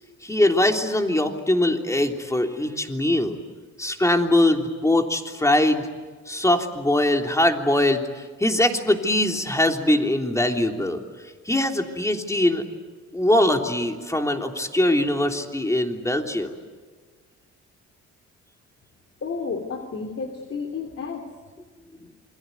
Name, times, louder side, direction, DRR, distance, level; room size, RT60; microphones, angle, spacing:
voice 1, 0.2-3.4 3.8-5.9 6.3-11.0 11.4-12.7 13.1-16.6, left 1 dB, 10° left, 3 dB, 3.3 m, -22 dB
voice 2, 19.2-21.3 22.0-22.1, left 5 dB, 45° left, 5 dB, 2.9 m, -32 dB
28.5 x 22.0 x 9.5 m, 1.4 s
cardioid pair, 90°, 30 cm